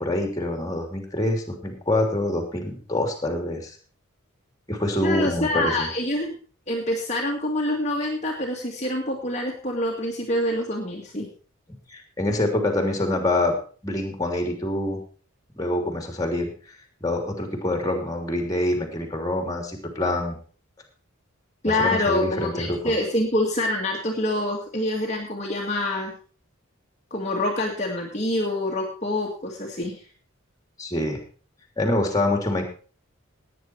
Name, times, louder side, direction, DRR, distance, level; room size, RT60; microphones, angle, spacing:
voice 1, 0.0-3.8 4.7-5.9 11.9-13.5 13.8-15.0 15.5-16.5 17.0-20.4 21.6-22.9 30.8-31.2 31.8-32.7, left 1 dB, 15° left, 3 dB, 3.2 m, -25 dB
voice 2, 5.0-6.3 6.7-11.3 21.6-26.1 27.1-29.9, left 1 dB, 35° left, -1 dB, 2.0 m, -26 dB
17.5 x 9.5 x 4.6 m, 0.40 s
head